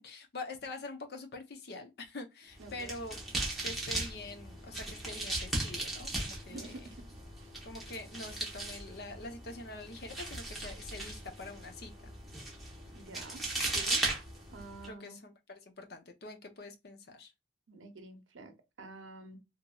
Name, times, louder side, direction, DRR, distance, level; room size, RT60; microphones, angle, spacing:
voice 1, 0.0-3.2 3.6-6.8 7.6-12.1 14.8-17.3, left 2 dB, 55° left, 0.6 m, -45 dB
sound 1, 2.5-14.9, right 2 dB, ahead, 0.8 m, -38 dB
voice 2, 2.6-2.9 6.5-7.5 12.9-14.0 14.5-15.2 17.7-19.4, right 2 dB, 85° right, 0.7 m, -49 dB
2.8 x 2.7 x 2.2 m
head